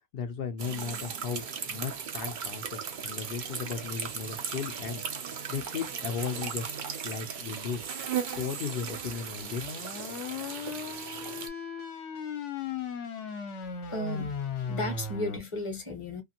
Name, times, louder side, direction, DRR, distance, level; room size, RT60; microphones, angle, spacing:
voice 1, 0.1-1.4 1.7-5.0 5.5-6.7 7.0-7.8 8.3-9.7, left 6 dB, 80° left, 0.5 m, -35 dB
sound 1, 0.6-11.5, right 7 dB, 75° right, 0.4 m, -37 dB
sound 2, 9.4-15.4, left 5 dB, 60° left, 0.9 m, -36 dB
voice 2, 13.9-14.3 14.6-16.2, left 1 dB, 30° left, 0.7 m, -34 dB
2.5 x 2.5 x 2.7 m
omnidirectional pair, 1.5 m